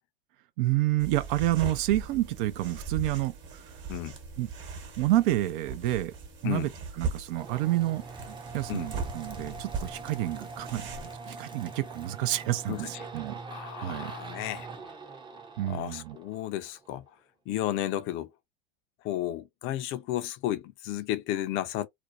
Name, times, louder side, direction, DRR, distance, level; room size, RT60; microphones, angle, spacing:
voice 1, 0.6-3.7 4.4-4.5 5.0-6.1 6.4-6.7 7.0-13.4 13.8-14.1 15.6-16.2, right 15 dB, 60° right, 0.5 m, -29 dB
sound 1, 1.0-11.2, right 4 dB, 40° right, 1.1 m, -39 dB
sound 2, 7.3-16.9, right 4 dB, 15° right, 0.6 m, -43 dB
voice 2, 12.7-13.1 13.5-14.7 15.7-17.0 17.5-18.3 19.0-21.9, left 13 dB, 40° left, 0.5 m, -33 dB
2.5 x 2.1 x 2.4 m
hypercardioid pair, 100°, 30 cm